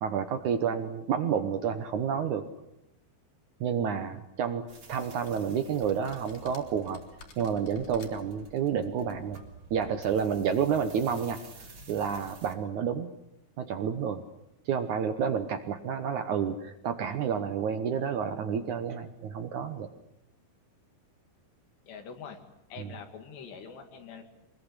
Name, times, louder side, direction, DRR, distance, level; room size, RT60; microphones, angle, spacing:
voice 1, 0.0-2.5 3.6-7.0 7.4-9.4 9.7-11.4 11.9-13.1 13.6-14.2 14.7-19.9 22.8-22.9, right 7 dB, 65° right, 9 dB, 2.0 m, -30 dB
sound 1, 4.7-12.5, right 2 dB, 30° right, 3.6 m, -51 dB
sound 2, 4.9-5.4 5.8-8.4, left 5 dB, 55° left, 4.1 m, -52 dB
voice 2, 21.9-22.4 22.7-24.2, left 6 dB, 85° left, 5 dB, 4.4 m, -44 dB
24.0 x 21.5 x 9.9 m, 0.85 s
omnidirectional pair, 4.8 m